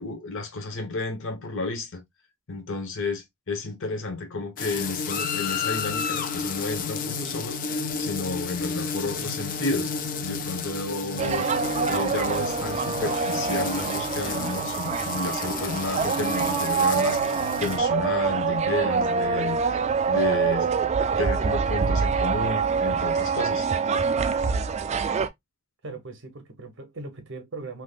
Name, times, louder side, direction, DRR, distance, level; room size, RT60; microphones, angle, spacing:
voice 1, 0.0-2.0 2.5-9.9 10.2-19.8 20.1-20.7 21.2-23.7, left 3 dB, 60° left, 1.0 m, -32 dB
sound 1, 4.6-17.8, left 5 dB, 40° left, 0.5 m, -32 dB
sound 2, 11.2-25.3, right 5 dB, 30° right, 0.3 m, -25 dB
voice 2, 25.8-27.8, right 3 dB, 60° right, 1.0 m, -39 dB
3.4 x 2.9 x 2.3 m
head